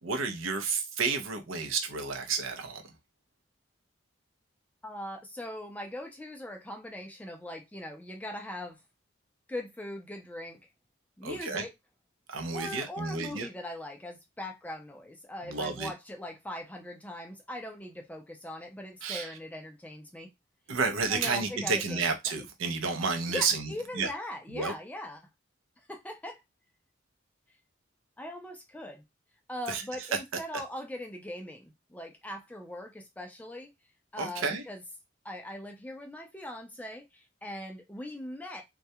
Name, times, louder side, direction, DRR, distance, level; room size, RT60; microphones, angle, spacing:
voice 1, 0.0-2.8 11.2-11.6 12.3-13.5 15.4-15.9 19.0-19.3 20.7-23.7 24.0-24.1 24.5-24.7 29.7-29.8 34.2-34.6, right 4 dB, 85° right, 0.5 m, -31 dB
voice 2, 4.8-8.8 9.5-10.6 11.2-11.7 12.5-20.3 21.1-22.1 23.3-25.2 25.8-26.4 28.2-29.0 29.5-33.7 34.1-34.8 35.2-38.6, left 1 dB, 10° left, 0.3 m, -40 dB
2.3 x 2.1 x 2.6 m
head